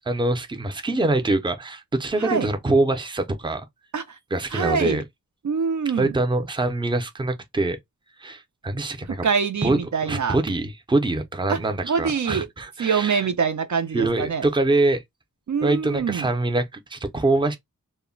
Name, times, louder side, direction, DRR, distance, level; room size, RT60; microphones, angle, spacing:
voice 1, 0.1-3.6 4.3-5.0 6.0-7.8 8.2-9.3 9.6-9.8 10.1-13.3 13.9-15.0 15.6-17.6, right 2 dB, 15° right, 0.5 m, -24 dB
voice 2, 2.2-2.5 3.9-4.0 4.5-5.0 5.4-6.2 9.2-10.4 11.5-11.6 11.8-12.5 12.8-14.4 15.5-16.3, right 6 dB, 60° right, 0.4 m, -24 dB
2.1 x 2.1 x 3.7 m
wide cardioid pair, 75°, 33 cm